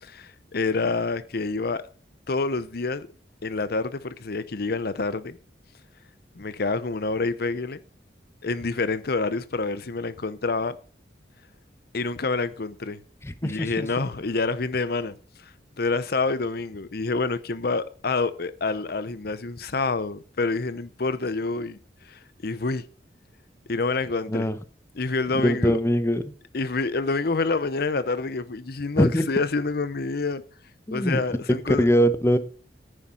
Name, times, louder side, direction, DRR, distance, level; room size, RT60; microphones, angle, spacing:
voice 1, 0.0-1.8 2.3-3.1 3.4-5.4 6.3-7.8 8.4-10.8 11.9-13.0 13.4-22.8 23.7-24.5 25.0-25.8 26.5-30.4 30.9-31.9, left 3 dB, 60° left, 0.8 m, -27 dB
voice 2, 13.2-13.9 24.3-24.5 25.3-26.2 29.0-29.2 30.9-31.2 31.7-32.4, equal, 15° left, 0.8 m, -22 dB
10.0 x 9.8 x 4.3 m
head